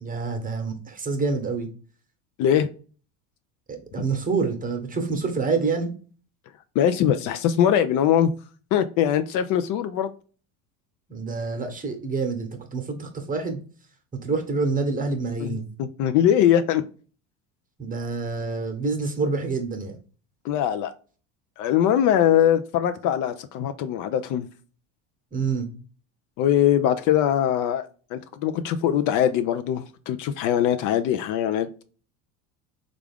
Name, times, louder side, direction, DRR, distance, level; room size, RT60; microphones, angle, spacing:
voice 1, 0.0-1.7 3.7-5.9 11.1-13.6 14.2-15.7 17.8-20.0 25.3-25.7, right 4 dB, 20° right, 1.0 m, -27 dB
voice 2, 6.8-8.3 8.7-10.1 15.4-16.8 20.4-20.9 21.6-24.5 26.4-27.8 28.1-31.8, left 10 dB, 55° left, 0.5 m, -22 dB
3.4 x 2.5 x 3.4 m
hypercardioid pair, 90°, 38 cm